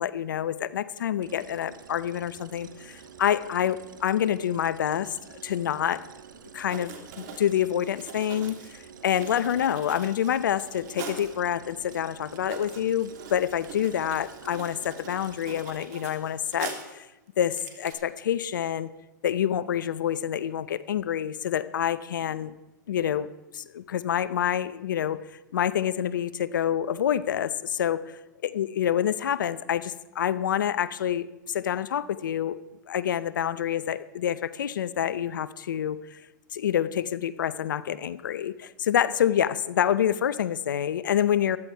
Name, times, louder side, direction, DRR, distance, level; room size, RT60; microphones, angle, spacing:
voice 1, 0.0-6.0 6.5-17.1 17.4-18.9 19.2-22.5 22.9-23.3 23.5-25.2 25.5-28.2 28.5-32.6 32.9-36.2 36.5-41.6, left 10 dB, 85° left, 16 dB, 0.7 m, -27 dB
sound 1, 1.2-15.7, right 7 dB, 85° right, 1.3 m, -49 dB
Writing, 6.6-11.3 11.9-12.0 12.3-17.0 17.4-17.9, right 6 dB, 60° right, 2.8 m, -43 dB
15.0 x 11.5 x 4.5 m, 1.0 s
hypercardioid pair, 115°, 10 cm